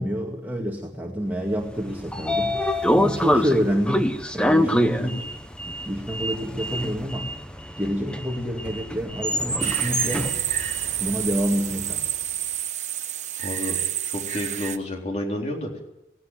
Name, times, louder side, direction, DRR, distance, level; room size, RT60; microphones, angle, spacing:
voice 1, 0.0-2.6 2.9-5.1 5.6-7.3 7.8-10.3 11.0-12.1, equal, 10° right, -1 dB, 2.2 m, -27 dB
Sliding door, 1.7-11.8, equal, 5° left, 0.9 m, -26 dB
voice 2, 4.7-5.2 13.4-13.8 14.1-15.8, left 1 dB, 35° left, 1 dB, 3.7 m, -30 dB
sound 1, 9.6-14.8, right 11 dB, 40° right, 1.0 m, -29 dB
18.0 x 17.5 x 9.3 m, 0.90 s
head